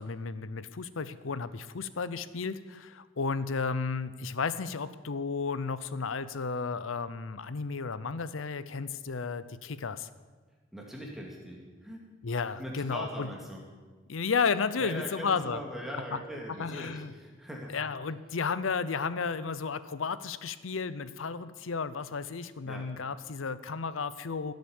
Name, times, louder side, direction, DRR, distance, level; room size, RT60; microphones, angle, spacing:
voice 1, 0.0-10.1 12.2-13.3 14.1-15.6 16.1-16.2 16.6-17.1 17.7-24.5, left 5 dB, 85° left, 14 dB, 0.7 m, -33 dB
voice 2, 10.7-12.0 12.6-13.6 14.8-17.7 22.7-22.9, equal, ahead, -2 dB, 2.4 m, -41 dB
15.5 x 7.9 x 7.2 m, 1.4 s
head